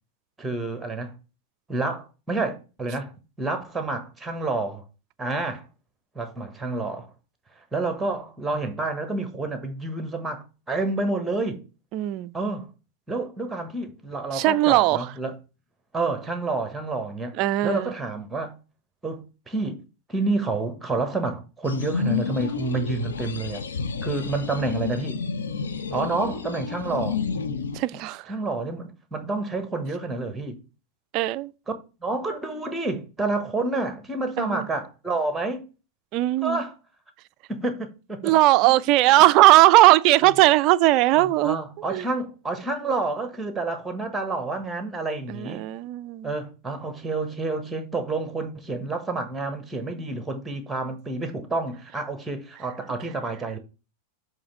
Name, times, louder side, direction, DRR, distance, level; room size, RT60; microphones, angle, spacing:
voice 1, 0.4-1.1 1.7-4.8 5.2-5.7 6.1-7.1 7.7-11.6 12.3-12.7 13.1-15.4 15.9-18.6 19.0-19.8 20.1-23.6 24.0-25.2 25.9-27.2 27.9-28.0 28.3-30.6 31.7-31.8 32.0-35.7 36.4-36.7 37.5-38.4 38.6-38.8 40.2-40.3 41.1-45.7 46.2-53.6, right 3 dB, 10° right, 1.3 m, -29 dB
voice 2, 11.9-12.3 14.3-15.0 17.4-17.9 27.7-28.2 31.1-31.5 34.4-34.7 36.1-36.6 38.2-41.6 41.9-42.0 45.3-46.3, right 16 dB, 40° right, 0.3 m, -18 dB
sound 1, 21.6-27.8, left 5 dB, 70° left, 0.7 m, -30 dB
7.1 x 3.2 x 5.8 m
figure-of-eight pair, 90°, 0 cm